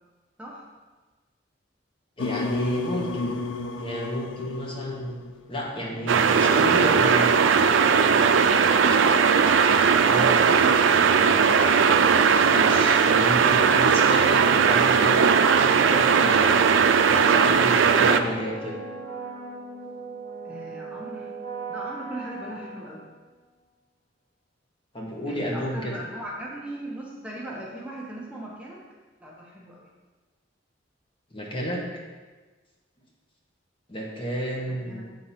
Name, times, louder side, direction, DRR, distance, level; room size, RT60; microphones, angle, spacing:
sound 1, 2.2-5.5, left 3 dB, 90° left, 0.5 m, -32 dB
voice 1, 2.2-3.4 3.8-5.2 5.5-7.4 10.1-10.4 12.4-15.2 15.6-16.6 17.1-18.7 24.9-25.9 31.3-31.8 33.9-35.0, equal, 30° left, -2 dB, 1.3 m, -31 dB
sound 2, 5.8-23.4, right 2 dB, 10° left, 1.5 m, -40 dB
sound 3, 6.1-18.2, right 6 dB, 80° right, 0.4 m, -19 dB
voice 2, 20.4-21.3 21.7-23.0 25.3-28.8 29.2-29.9 34.7-35.1, right 1 dB, 5° right, -4 dB, 0.9 m, -39 dB
7.1 x 3.8 x 5.7 m, 1.3 s
head